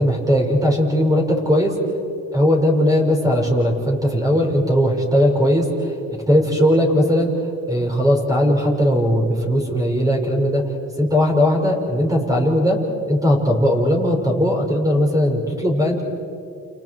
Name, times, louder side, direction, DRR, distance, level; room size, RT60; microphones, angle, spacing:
voice 1, 0.0-1.7 2.3-5.9 6.3-7.3 7.7-10.6 11.0-12.8 13.1-16.0, equal, 10° right, -1 dB, 5.6 m, -18 dB
29.5 x 29.5 x 4.8 m, 2.4 s
cardioid pair, 90°, 30 cm